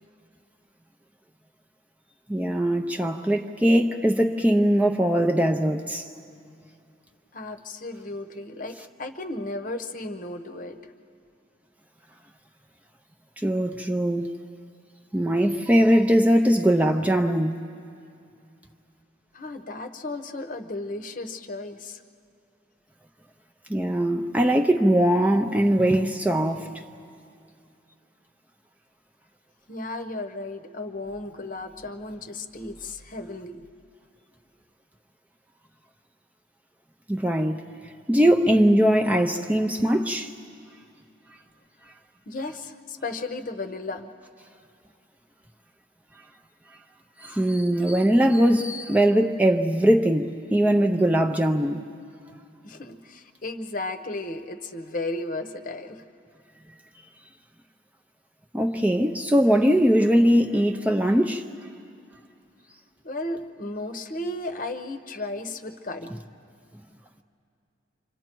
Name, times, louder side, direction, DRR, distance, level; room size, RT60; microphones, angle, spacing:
voice 1, 2.3-6.1 13.4-14.3 15.1-17.6 23.7-26.7 37.1-37.6 38.1-40.3 47.2-51.8 58.5-61.4, equal, 10° right, 0.6 m, -21 dB
voice 2, 7.3-10.8 19.3-22.0 29.7-33.7 42.3-44.1 52.6-56.0 63.0-66.1, left 2 dB, 45° left, 0.9 m, -34 dB
29.0 x 25.5 x 4.6 m
head